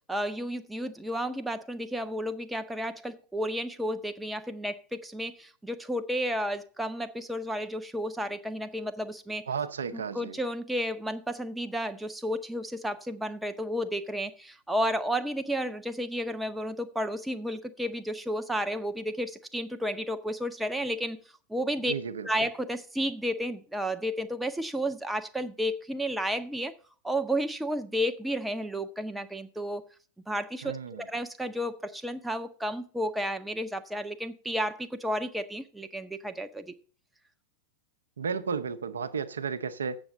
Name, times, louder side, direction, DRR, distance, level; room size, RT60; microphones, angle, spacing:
voice 1, 0.1-9.4 9.9-21.2 21.5-21.9 22.2-26.7 27.0-29.8 30.3-36.7, equal, 5° right, 0.7 m, -32 dB
voice 2, 9.5-10.4 21.9-22.5 30.6-31.0 38.2-40.0, right 6 dB, 70° right, 0.7 m, -33 dB
7.9 x 6.1 x 7.9 m
figure-of-eight pair, 90°, 0 cm